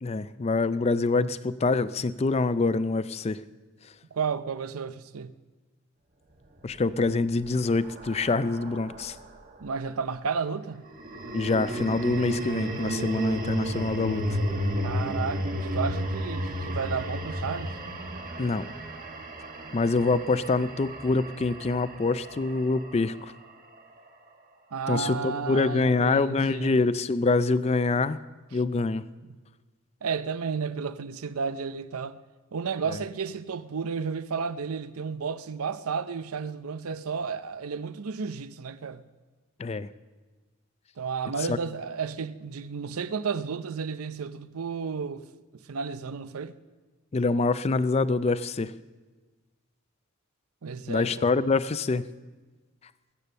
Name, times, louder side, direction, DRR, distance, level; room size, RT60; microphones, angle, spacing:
voice 1, 0.0-3.4 6.6-9.2 11.3-14.2 18.4-18.7 19.7-23.1 24.9-28.2 28.5-29.0 39.6-39.9 41.5-41.6 47.1-48.7 50.9-52.0, left 3 dB, 30° left, 0.4 m, -25 dB
voice 2, 4.1-5.4 9.6-10.9 14.8-17.8 24.7-26.8 28.5-28.6 29.2-29.4 30.0-32.2 32.5-39.1 41.0-45.3 45.5-46.5 50.6-51.3, right 5 dB, 80° right, 0.6 m, -32 dB
sound 1, 6.8-9.3 10.9-23.2, equal, 40° right, 1.5 m, -33 dB
21.5 x 8.6 x 6.7 m
head